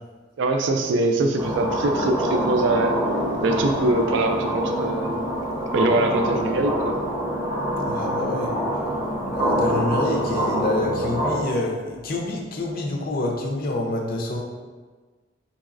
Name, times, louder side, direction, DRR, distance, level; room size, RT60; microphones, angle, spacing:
voice 1, 0.4-3.0 3.4-5.2 5.7-7.0, right 2 dB, 65° right, 4 dB, 0.4 m, -23 dB
sound 1, 1.4-11.4, equal, 15° right, 0.6 m, -25 dB
voice 2, 7.9-8.5 9.3-14.4, left 2 dB, 50° left, 1 dB, 0.5 m, -27 dB
4.0 x 3.1 x 2.5 m, 1.4 s
head